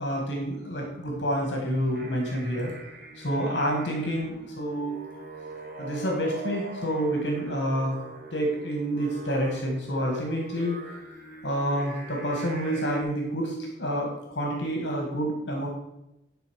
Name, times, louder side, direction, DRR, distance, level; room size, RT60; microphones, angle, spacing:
voice 1, 0.0-2.7 3.2-5.0 5.8-8.0 8.3-10.8 11.4-15.7, equal, 70° left, 1 dB, 1.9 m, -28 dB
Singing, 1.7-13.0, right 2 dB, 45° right, 1.9 m, -43 dB
11.0 x 4.0 x 6.4 m, 0.89 s
head